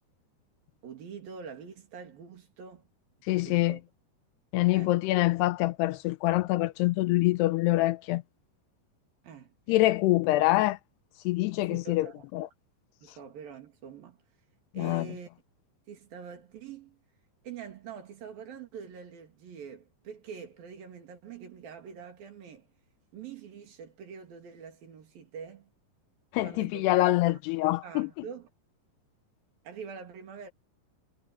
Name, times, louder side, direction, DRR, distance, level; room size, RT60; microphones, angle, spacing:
voice 1, 0.8-2.9 3.3-3.8 4.7-5.0 9.2-9.5 11.6-12.3 13.0-14.2 14.7-15.3 15.9-17.0 17.4-22.7 23.1-25.7 26.4-26.9 27.2-27.4 27.8-28.5 29.6-30.5, right 6 dB, 60° right, 4.2 m, -45 dB
voice 2, 3.3-3.8 4.5-8.2 9.7-10.8 11.3-12.1 12.3-12.5 14.8-15.1 26.3-28.1, left 18 dB, 85° left, 2.6 m, -25 dB
omnidirectional pair, 4.9 m